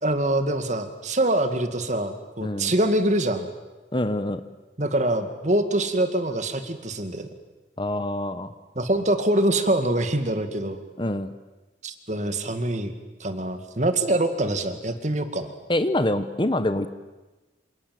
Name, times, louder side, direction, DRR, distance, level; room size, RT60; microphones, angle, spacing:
voice 1, 0.0-3.5 4.8-7.3 8.8-10.8 11.8-12.9 13.2-15.5, right 1 dB, 40° right, 8 dB, 2.3 m, -24 dB
voice 2, 2.4-2.7 3.9-4.4 7.8-8.5 11.0-11.3 15.7-16.9, left 1 dB, 25° left, 11 dB, 1.1 m, -25 dB
27.5 x 27.5 x 7.9 m, 1.1 s
head